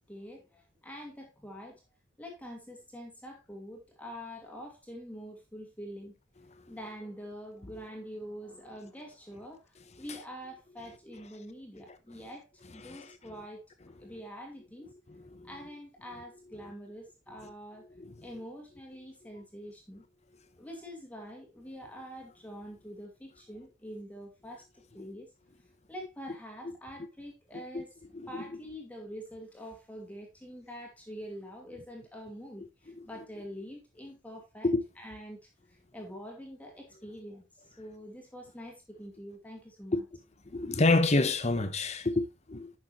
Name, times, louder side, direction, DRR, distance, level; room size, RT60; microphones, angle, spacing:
voice 1, 0.0-1.8 2.2-6.2 6.7-13.6 14.0-14.9 15.4-17.9 18.2-20.1 20.6-25.3 25.9-27.9 28.3-34.7 35.0-37.5 37.8-40.0, equal, 10° left, 2.3 m, -45 dB
voice 2, 15.1-15.5 18.0-18.1 27.7-27.8 28.1-28.6 33.0-33.1 34.6-34.8 39.9-40.0 40.5-42.7, left 2 dB, 35° left, 0.9 m, -28 dB
10.5 x 6.4 x 3.1 m
head